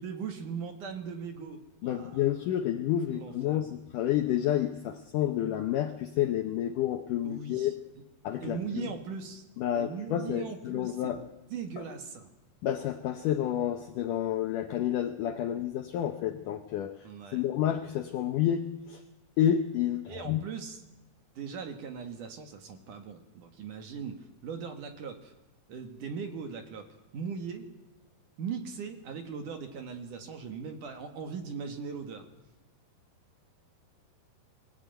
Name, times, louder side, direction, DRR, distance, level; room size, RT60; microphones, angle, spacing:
voice 1, 0.0-2.4 3.1-3.6 7.2-7.7 8.4-9.4 9.7-12.3 17.0-17.5 20.1-20.8 21.4-25.3 25.7-26.9 27.1-27.7 28.4-32.3, right 6 dB, 60° right, 7 dB, 2.7 m, -39 dB
voice 2, 1.8-7.8 8.2-8.9 9.6-11.2 12.6-19.0 19.4-20.4, left 11 dB, 75° left, 7 dB, 1.9 m, -30 dB
23.0 x 17.5 x 9.1 m, 1.0 s
omnidirectional pair, 4.9 m